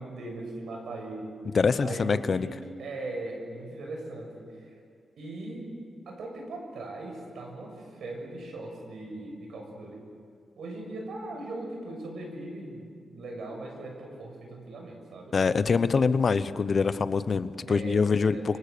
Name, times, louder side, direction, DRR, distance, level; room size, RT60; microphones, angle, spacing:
voice 1, 0.0-1.3 1.8-4.5 5.2-5.7 6.0-10.0 10.6-15.4 17.7-18.6, right 2 dB, 85° right, 2 dB, 6.6 m, -39 dB
voice 2, 1.5-2.5 15.3-18.6, left 5 dB, 45° left, 14 dB, 0.8 m, -24 dB
29.5 x 24.5 x 6.8 m, 2.2 s
wide cardioid pair, 120°, 0 cm